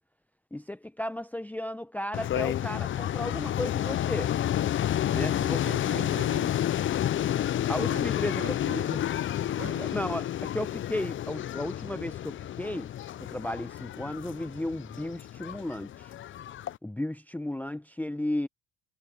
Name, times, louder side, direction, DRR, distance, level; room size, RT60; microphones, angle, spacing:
voice 1, 0.5-4.3 5.1-5.6 5.9-6.0 7.7-8.6 8.9-9.0 9.8-12.9 13.3-16.1 16.8-18.5, left 1 dB, 5° left, 0.8 m, -34 dB
sound 1, 2.1-16.8, left 11 dB, 40° left, 0.5 m, -30 dB
voice 2, 5.1-6.7 7.9-8.0 8.4-9.0 9.4-10.0, right 7 dB, 45° right, 3.1 m, -42 dB
supercardioid pair, 75°, 33 cm